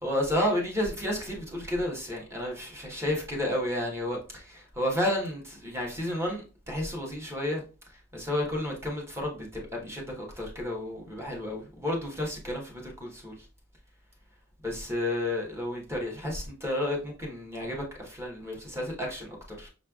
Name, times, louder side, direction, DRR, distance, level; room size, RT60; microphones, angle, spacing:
voice 1, 0.0-7.6 8.1-13.4 14.6-19.7, left 1 dB, 10° right, 1.1 m, -31 dB
6.0 x 3.2 x 2.4 m
head